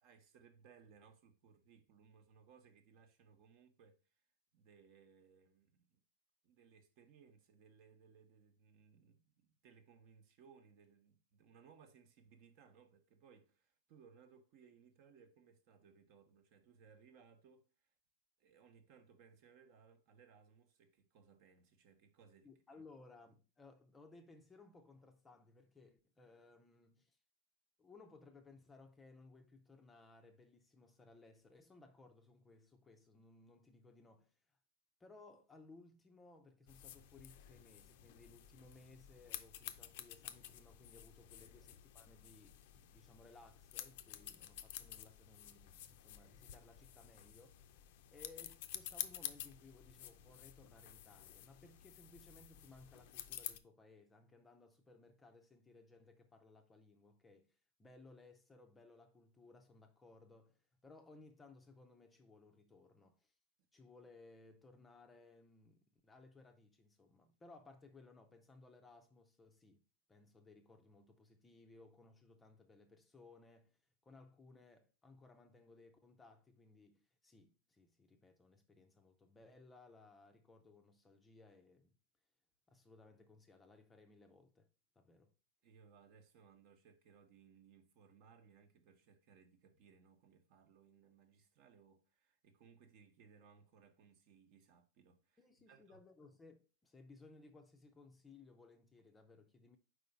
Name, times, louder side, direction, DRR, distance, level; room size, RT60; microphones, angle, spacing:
voice 1, 0.0-4.0 4.5-6.0 6.4-17.7 18.4-22.5 22.7-22.9 85.6-96.0, right 6 dB, 45° right, 1.0 m, -65 dB
voice 2, 22.4-27.2 27.8-34.6 35.0-63.3 63.7-69.8 70.1-82.0 82.7-84.7 85.0-85.3 95.4-99.8, left 3 dB, 10° left, 0.6 m, -62 dB
close snipping, 36.7-53.6, left 12 dB, 55° left, 0.5 m, -51 dB
4.8 x 4.1 x 5.1 m
supercardioid pair, 150°, 0 cm